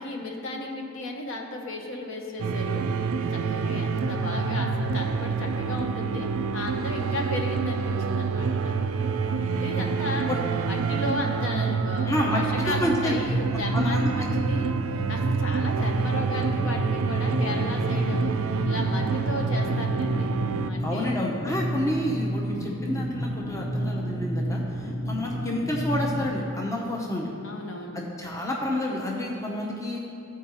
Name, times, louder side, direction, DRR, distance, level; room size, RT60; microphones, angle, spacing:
voice 1, 0.0-2.8 3.3-8.7 9.5-10.3 10.6-14.7 15.1-18.3 18.6-20.3 20.6-21.1 27.4-28.0, left 2 dB, 65° left, 1 dB, 0.8 m, -34 dB
sound 1, 2.4-20.7, right 5 dB, 75° right, 0.3 m, -27 dB
voice 2, 12.0-13.2 13.7-14.1 20.8-27.3 27.9-30.0, left 1 dB, 15° left, -2 dB, 0.6 m, -29 dB
sound 2, 13.3-26.3, equal, 40° left, 1.3 m, -30 dB
13.5 x 4.6 x 2.9 m, 2.5 s
head